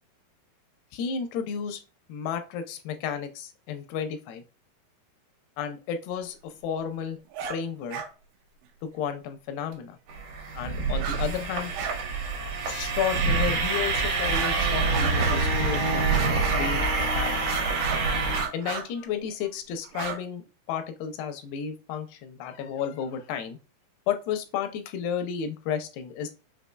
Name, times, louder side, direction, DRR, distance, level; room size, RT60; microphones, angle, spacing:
voice 1, 0.9-1.8 2.1-4.4 5.6-7.2 7.5-8.0 8.8-10.0 10.5-11.7 12.6-17.6 18.5-20.4 20.7-23.6 24.1-26.3, left 7 dB, 85° left, 7 dB, 2.7 m, -32 dB
sound 1, 7.3-7.6 7.9-8.1 9.7-9.8 10.9-11.2 11.5-12.0 12.3-12.4 13.1-13.2 14.2-14.6 14.9-15.6 16.1-16.8 17.3-18.0 18.3-18.9 19.8-20.2, right 7 dB, 85° right, 2.0 m, -34 dB
sound 2, 10.1-18.5, right 4 dB, 65° right, 1.6 m, -26 dB
6.4 x 2.7 x 2.2 m, 0.32 s
omnidirectional pair, 4.5 m